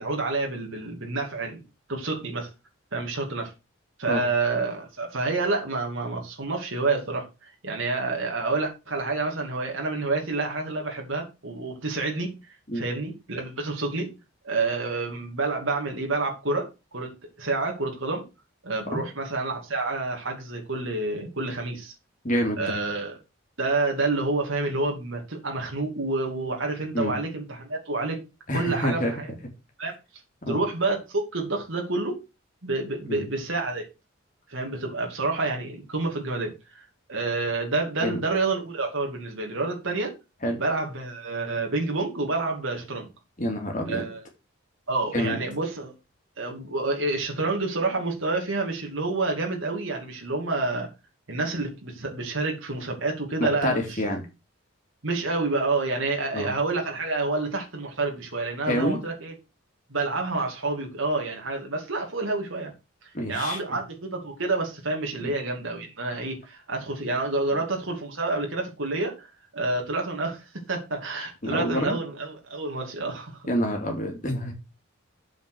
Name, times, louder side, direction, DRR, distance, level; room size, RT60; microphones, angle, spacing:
voice 1, 0.0-1.6 1.9-2.5 2.9-3.5 4.0-12.4 12.7-14.1 14.4-17.1 17.4-18.2 18.6-21.9 22.6-23.2 23.6-28.2 28.5-29.3 29.8-30.0 30.5-32.2 32.6-33.8 34.5-40.1 40.6-43.1 43.9-44.2 44.9-45.9 46.4-50.9 51.3-54.0 55.0-59.3 59.9-62.7 63.0-69.3 69.5-73.4, right 3 dB, 70° right, 2.7 m, -28 dB
voice 2, 22.2-22.8 26.9-27.1 28.5-29.3 30.4-30.6 33.0-33.2 38.0-38.2 40.4-40.6 43.4-44.0 45.1-45.4 53.4-54.3 56.3-56.5 58.7-59.0 63.1-63.6 65.2-65.3 71.4-72.0 73.5-74.5, equal, 35° left, 2.6 m, -27 dB
8.0 x 5.3 x 6.1 m
head